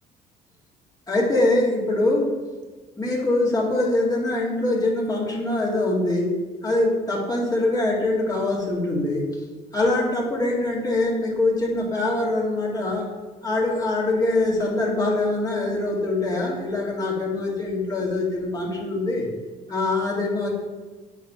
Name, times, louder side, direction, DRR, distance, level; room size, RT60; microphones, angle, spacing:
voice 1, 1.1-2.3 3.0-6.4 6.6-9.3 9.7-13.1 13.4-19.3 19.7-20.5, left 2 dB, 20° left, -3 dB, 2.1 m, -23 dB
9.2 x 3.5 x 5.6 m, 1.3 s
cardioid pair, 110°, 17 cm